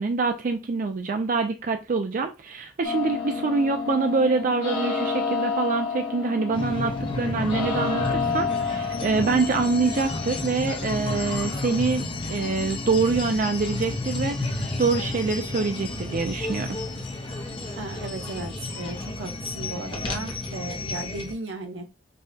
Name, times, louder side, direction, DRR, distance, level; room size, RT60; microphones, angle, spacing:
voice 1, 0.0-16.8, right 4 dB, 45° right, 0.4 m, -25 dB
sound 1, 2.8-16.7, left 5 dB, 85° left, 1.4 m, -32 dB
sound 2, 6.5-21.3, left 2 dB, 30° left, 0.8 m, -32 dB
voice 2, 17.8-21.9, right 2 dB, 85° right, 0.8 m, -35 dB
5.4 x 2.3 x 2.7 m
head